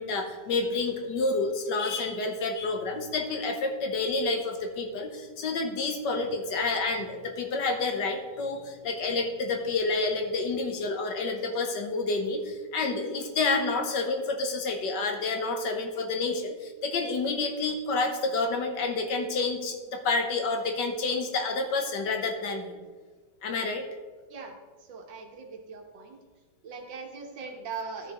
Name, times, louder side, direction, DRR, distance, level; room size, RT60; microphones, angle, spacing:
voice 1, 0.0-22.6 23.4-23.9, left 3 dB, 70° left, 4 dB, 1.5 m, -29 dB
voice 2, 24.8-26.2 26.6-28.1, right 4 dB, 80° right, 3 dB, 1.8 m, -40 dB
12.5 x 6.6 x 3.0 m, 1.4 s
omnidirectional pair, 2.0 m